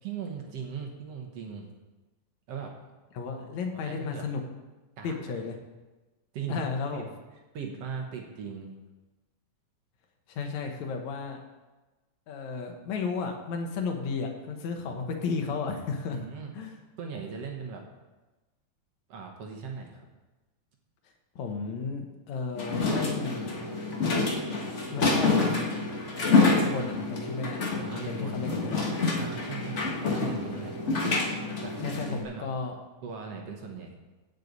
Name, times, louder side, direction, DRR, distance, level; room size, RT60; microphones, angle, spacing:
voice 1, 0.0-1.7 2.5-2.7 3.4-4.3 5.0-5.2 6.3-6.7 6.9-7.0 7.5-8.7 16.1-16.5 17.0-17.8 19.1-20.1 27.8-28.5 29.2-30.8 31.6-32.5 33.0-34.0, right 6 dB, 60° right, 2 dB, 2.1 m, -39 dB
voice 2, 3.1-4.4 5.0-5.5 6.5-7.0 10.3-11.4 12.3-16.2 16.5-16.7 21.4-23.6 24.9-25.6 26.3-27.6 27.9-28.8 31.8-32.7, left 4 dB, 75° left, 4 dB, 2.5 m, -33 dB
sound 1, 22.6-32.2, left 3 dB, 55° left, 0.8 m, -27 dB
16.5 x 6.6 x 4.0 m, 1.1 s
omnidirectional pair, 3.3 m